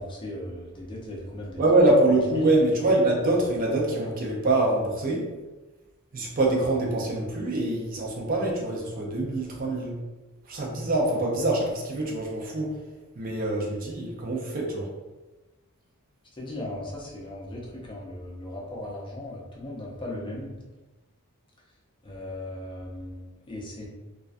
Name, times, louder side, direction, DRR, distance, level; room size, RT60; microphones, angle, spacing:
voice 1, 0.0-1.6 2.3-2.5 16.4-20.5 22.0-23.9, left 1 dB, 20° left, -3 dB, 0.5 m, -37 dB
voice 2, 1.6-5.3 6.1-9.9 10.5-12.7 13.2-14.9, right 2 dB, 40° right, -2 dB, 0.5 m, -24 dB
2.3 x 2.1 x 2.5 m, 1.1 s
head